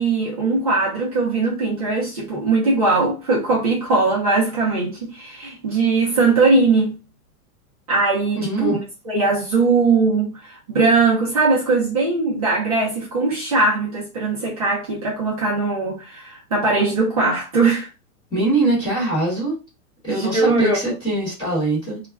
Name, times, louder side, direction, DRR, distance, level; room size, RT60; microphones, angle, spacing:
voice 1, 0.0-7.0 7.9-8.8 9.0-17.9 20.1-20.8, right 3 dB, 25° right, 0.4 m, -20 dB
voice 2, 8.4-8.8 18.3-19.6 20.0-22.0, right 2 dB, 10° left, 0.9 m, -22 dB
2.3 x 2.1 x 3.3 m
supercardioid pair, 165°, 46 cm